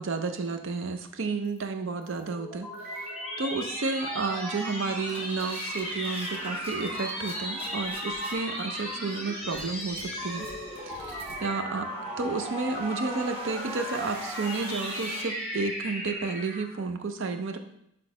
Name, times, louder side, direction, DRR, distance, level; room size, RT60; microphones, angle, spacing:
voice 1, 0.0-3.1 3.4-10.5 10.7-11.9 12.2-17.6, right 4 dB, 55° right, 7 dB, 0.5 m, -32 dB
sound 1, 1.4-1.6 2.0-2.3 2.7-3.1 3.6-3.9 4.5-15.2, right 1 dB, 25° right, 0.8 m, -45 dB
sound 2, 2.1-16.8, equal, ahead, 1.6 m, -36 dB
6.0 x 3.2 x 4.9 m, 0.77 s
head